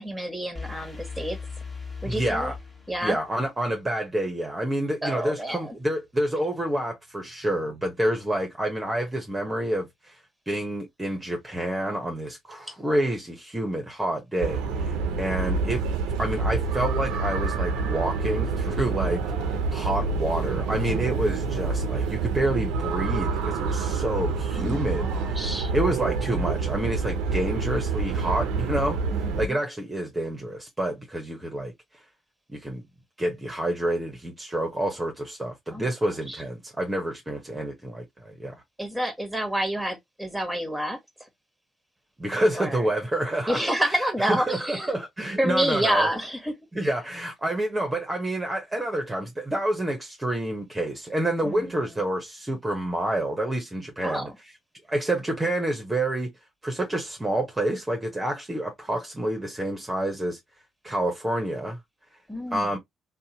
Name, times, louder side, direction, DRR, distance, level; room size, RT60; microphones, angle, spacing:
voice 1, 0.0-1.4 2.0-2.5 2.9-3.2 5.0-5.7 24.5-25.7 29.1-29.6 35.7-35.9 36.3-36.4 38.8-41.0 42.5-42.9 43.5-45.0 45.4-46.6 46.8-46.9 51.4-52.0 54.0-54.4 62.3-62.8, right 1 dB, ahead, 1.2 m, -29 dB
sound 1, 0.6-3.5, left 5 dB, 20° left, 1.2 m, -38 dB
voice 2, 2.0-2.6 3.0-10.2 10.5-15.8 16.2-19.2 19.7-25.4 25.7-29.0 29.4-31.7 32.5-32.8 33.2-38.5 42.2-46.1 46.7-54.3 54.9-56.3 56.6-60.4 60.8-61.8 62.5-62.8, right 1 dB, 20° right, 0.8 m, -28 dB
sound 2, 14.4-29.5, right 4 dB, 80° right, 0.5 m, -27 dB
2.7 x 2.2 x 2.7 m
supercardioid pair, 60°, 0 cm